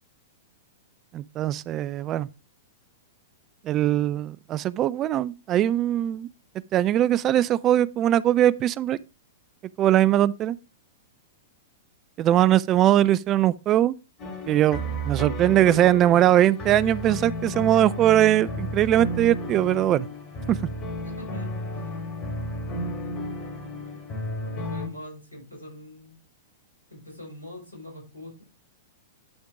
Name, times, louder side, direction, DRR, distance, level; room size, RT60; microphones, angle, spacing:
voice 1, 1.1-2.3 3.7-6.3 6.7-9.0 9.8-10.6 12.2-13.9 14.5-14.8 15.1-20.1 20.5-20.6, right 12 dB, 30° right, 0.3 m, -21 dB
sound 1, 14.2-24.9, equal, 30° left, 2.5 m, -33 dB
voice 2, 21.0-21.5 21.7-21.9 23.8-24.0 24.4-26.2 26.9-28.4, left 1 dB, 90° left, 5.1 m, -43 dB
10.5 x 3.6 x 4.8 m
figure-of-eight pair, 100°, 0 cm